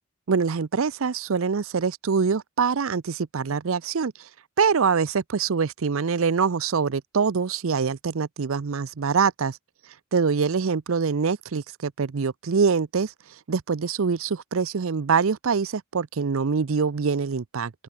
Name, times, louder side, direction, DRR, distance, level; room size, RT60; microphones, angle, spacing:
voice 1, 0.3-4.1 4.6-9.6 10.1-13.1 13.5-17.7, right 5 dB, 70° right, 0.6 m, -24 dB
open air
head